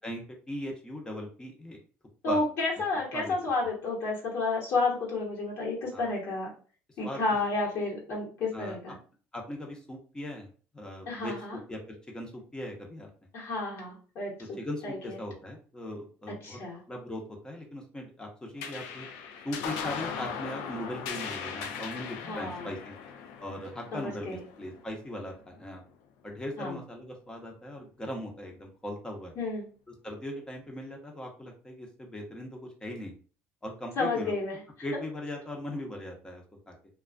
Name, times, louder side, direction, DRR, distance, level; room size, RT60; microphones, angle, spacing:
voice 1, 0.0-1.8 2.2-2.4 3.1-3.4 5.9-6.1 7.0-7.2 8.5-8.8 9.3-10.5 10.7-13.1 14.6-16.6 16.9-19.1 19.4-23.0 23.4-25.8 26.2-29.3 29.9-33.1 33.6-36.7, left 1 dB, 15° left, 1 dB, 0.8 m, -39 dB
voice 2, 2.2-6.5 7.0-9.0 11.1-11.6 13.3-15.0 16.4-16.8 22.3-22.7 23.9-24.4 26.6-26.8 29.4-29.6 34.0-34.6, left 3 dB, 55° left, -4 dB, 1.1 m, -31 dB
sound 1, 18.6-25.4, left 6 dB, 85° left, 0.4 m, -39 dB
2.3 x 2.2 x 2.4 m, 0.39 s
supercardioid pair, 95°, 5 cm